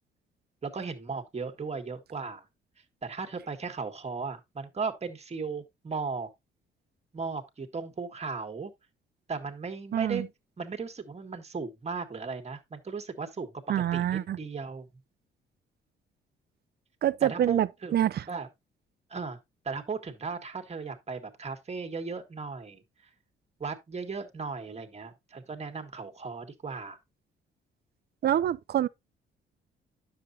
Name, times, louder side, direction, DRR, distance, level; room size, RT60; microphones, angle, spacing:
voice 1, 0.6-2.4 3.0-6.3 7.1-8.7 9.3-10.2 10.6-13.5 13.9-14.9 17.2-17.9 18.3-18.5 19.1-19.4 19.7-22.8 23.6-27.0, right 4 dB, 35° right, 1.8 m, -36 dB
voice 2, 9.9-10.3 13.7-14.4 17.0-18.2 28.2-28.9, right 11 dB, 55° right, 0.6 m, -26 dB
9.9 x 7.0 x 2.7 m
cardioid pair, 90°, 20 cm